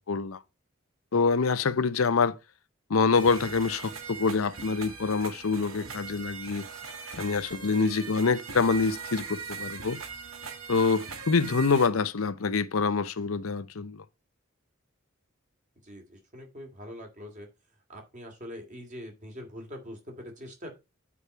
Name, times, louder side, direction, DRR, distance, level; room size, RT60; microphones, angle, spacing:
voice 1, 0.1-0.4 1.1-2.3 2.9-6.7 7.2-10.0 10.7-14.0, left 4 dB, 85° left, 0.7 m, -26 dB
sound 1, 3.1-11.9, right 5 dB, 85° right, 1.4 m, -41 dB
voice 2, 15.8-17.5 17.9-20.7, equal, 40° right, 2.7 m, -43 dB
8.4 x 4.8 x 5.5 m
head